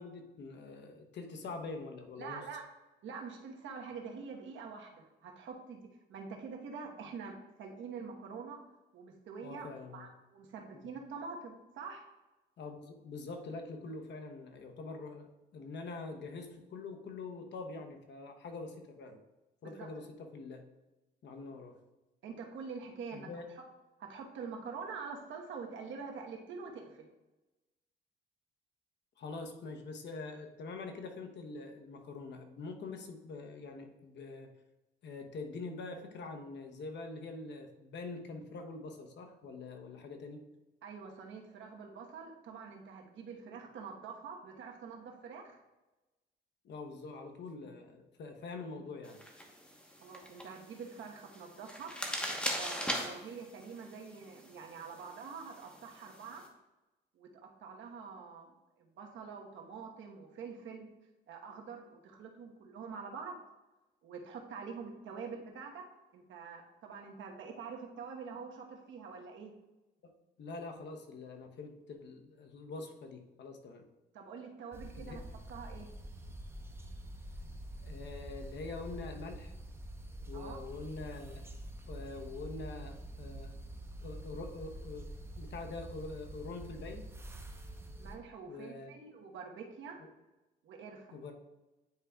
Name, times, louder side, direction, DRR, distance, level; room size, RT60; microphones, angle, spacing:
voice 1, 0.0-2.4 9.4-10.1 10.8-10.9 12.6-19.2 19.6-20.6 21.2-21.8 23.1-23.4 29.2-34.5 35.0-40.4 46.6-49.2 70.0-70.1 70.4-73.9 74.9-75.2 77.8-79.5 80.3-81.4 81.9-83.6 84.0-85.1 85.3-87.1 88.5-88.9 91.1-91.3, left 3 dB, 65° left, 4 dB, 0.9 m, -44 dB
voice 2, 2.2-2.6 3.0-8.6 8.9-12.0 19.6-19.9 22.2-23.3 24.0-27.1 40.8-45.6 50.0-51.9 52.6-56.4 57.1-60.9 61.3-63.4 64.0-65.8 66.1-69.5 74.1-75.2 75.5-75.9 80.3-80.6 88.0-90.0 90.6-91.2, right 5 dB, 75° right, 1 dB, 1.2 m, -46 dB
sound 1, 49.0-56.5, equal, 5° left, 1.1 m, -41 dB
sound 2, 74.7-88.2, right 1 dB, 10° right, 0.8 m, -46 dB
9.5 x 4.9 x 2.3 m, 1.1 s
cardioid pair, 90°, 20 cm